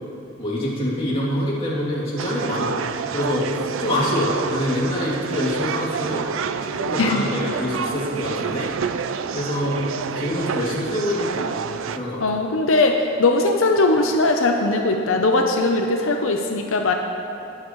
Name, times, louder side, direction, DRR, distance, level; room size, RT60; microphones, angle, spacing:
voice 1, 0.4-2.8 3.1-6.3 6.8-8.7 9.3-11.5 11.9-12.2, left 1 dB, 30° left, -7 dB, 2.8 m, -25 dB
sound 1, 2.2-12.0, right 6 dB, 75° right, 0.4 m, -28 dB
voice 2, 12.2-16.9, left 2 dB, 90° left, 3 dB, 0.7 m, -20 dB
19.5 x 7.6 x 3.1 m, 2.9 s
head